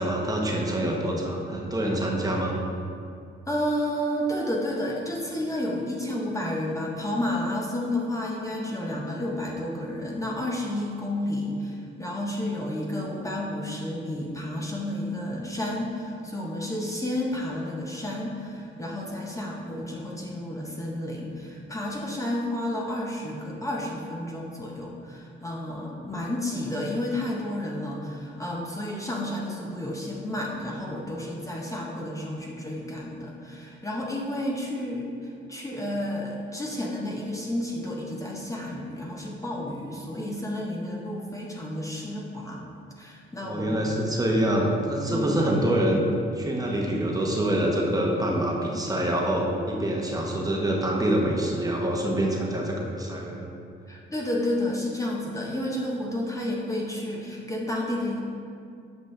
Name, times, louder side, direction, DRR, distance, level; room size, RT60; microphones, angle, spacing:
voice 1, 0.0-2.5 43.4-46.0 46.3-53.5, right 1 dB, 20° right, -1 dB, 1.0 m, -26 dB
voice 2, 3.5-42.6 43.0-44.1 45.1-45.4 53.9-58.2, left 1 dB, 15° left, -2 dB, 0.8 m, -31 dB
8.0 x 5.3 x 3.2 m, 2.5 s
cardioid pair, 90°, 20 cm